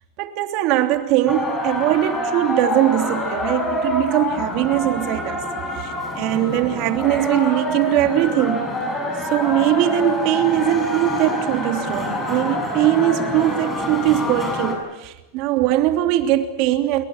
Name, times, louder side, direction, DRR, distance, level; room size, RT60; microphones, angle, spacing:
voice 1, 0.2-5.4 5.7-8.7 9.2-17.0, right 13 dB, 45° right, 3.1 m, -21 dB
sound 1, 1.3-14.8, left 1 dB, 10° left, 6.7 m, -26 dB
28.0 x 23.0 x 7.4 m
supercardioid pair, 165°, 0 cm